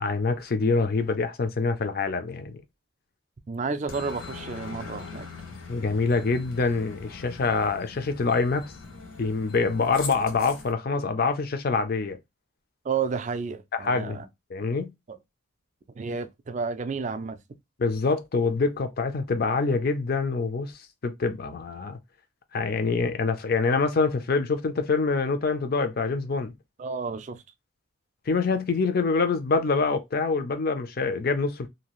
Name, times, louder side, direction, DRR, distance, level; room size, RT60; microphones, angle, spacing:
voice 1, 0.0-2.6 5.7-8.7 9.2-12.2 13.7-14.2 14.5-14.9 17.8-20.7 21.0-22.0 22.5-26.5 28.3-31.7, left 4 dB, 45° left, 0.4 m, -25 dB
voice 2, 3.5-5.3 12.8-14.3 16.0-17.4 26.8-27.4, right 5 dB, 35° right, 0.3 m, -31 dB
Aircraft, 3.9-10.7, left 4 dB, 70° left, 0.9 m, -41 dB
2.7 x 2.4 x 2.9 m
head